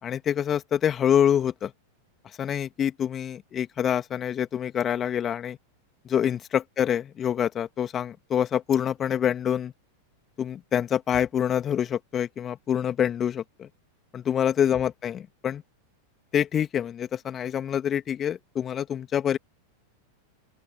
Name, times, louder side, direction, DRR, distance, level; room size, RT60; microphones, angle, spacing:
voice 1, 0.0-1.7 2.4-5.6 6.0-9.7 10.4-13.7 14.1-15.6 16.3-19.4, left 9 dB, 25° left, 2.8 m, -26 dB
open air
figure-of-eight pair, 90°, 0 cm